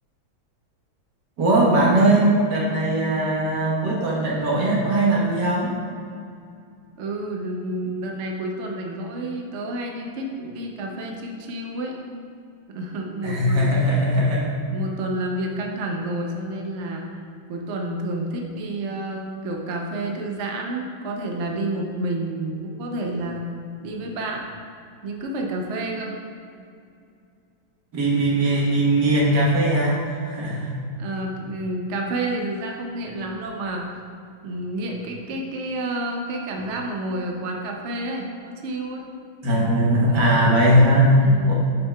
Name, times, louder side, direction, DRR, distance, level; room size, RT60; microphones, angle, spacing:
voice 1, 1.4-5.7 13.2-14.5 27.9-30.7 39.4-41.5, right 1 dB, 60° right, -4 dB, 1.8 m, -19 dB
voice 2, 7.0-12.0 12.7-13.7 14.7-17.2 17.5-23.4 23.8-24.4 25.0-26.2 31.0-33.9 34.4-39.1 40.1-40.3 41.2-41.5, right 1 dB, 85° right, 1 dB, 0.6 m, -29 dB
7.2 x 6.6 x 2.3 m, 2.4 s
omnidirectional pair, 2.2 m